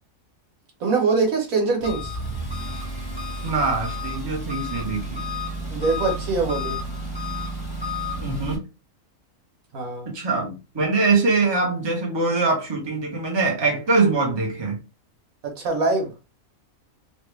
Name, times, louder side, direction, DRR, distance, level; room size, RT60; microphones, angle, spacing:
voice 1, 0.8-2.1 5.7-6.8 9.7-10.1 15.4-16.1, right 3 dB, 80° right, 1.5 m, -23 dB
Engine, 1.8-8.6, left 1 dB, 20° left, 0.9 m, -31 dB
voice 2, 3.4-5.2 8.2-8.6 10.1-14.8, right 3 dB, 20° right, 0.9 m, -23 dB
3.1 x 2.4 x 3.2 m
omnidirectional pair, 1.4 m